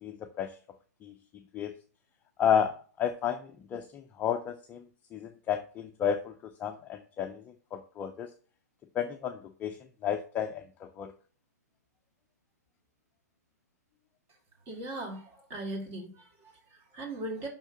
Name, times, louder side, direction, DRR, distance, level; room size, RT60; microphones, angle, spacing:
voice 1, 0.0-0.6 1.0-1.1 1.5-1.7 2.4-4.9 5.1-6.3 6.6-8.3 8.9-11.1, left 8 dB, 20° left, 6 dB, 0.5 m, -32 dB
voice 2, 14.7-17.5, right 2 dB, 30° right, 0 dB, 2.4 m, -39 dB
5.8 x 4.4 x 5.9 m, 0.42 s
hypercardioid pair, 130°, 9 cm